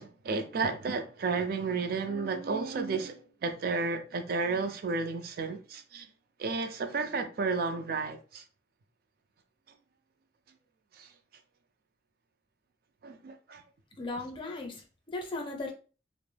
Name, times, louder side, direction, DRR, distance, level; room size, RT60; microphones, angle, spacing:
voice 1, 0.0-6.1 6.4-8.4 10.9-11.1 13.0-13.6, right 4 dB, 55° right, 0.4 m, -32 dB
voice 2, 14.0-15.7, left 2 dB, 30° left, 0.5 m, -37 dB
2.2 x 2.0 x 3.2 m
head